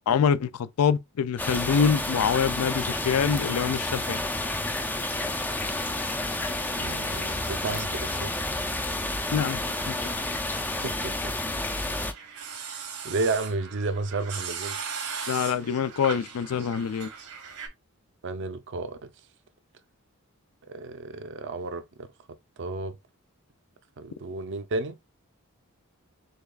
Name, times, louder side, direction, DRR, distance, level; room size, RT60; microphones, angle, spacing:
voice 1, 0.1-4.2 9.3-9.6 9.9-10.0 15.3-17.1, left 7 dB, 80° left, 0.4 m, -25 dB
sound 1, 1.4-12.1, left 2 dB, 10° left, 0.3 m, -30 dB
voice 2, 6.8-8.3 10.8-10.9 11.2-11.3 13.0-14.8 18.2-19.1 20.7-21.8 22.6-23.0 24.0-25.0, right 3 dB, 55° right, 0.5 m, -32 dB
sound 2, 11.9-17.7, right 6 dB, 75° right, 1.1 m, -38 dB
6.5 x 2.3 x 2.3 m
head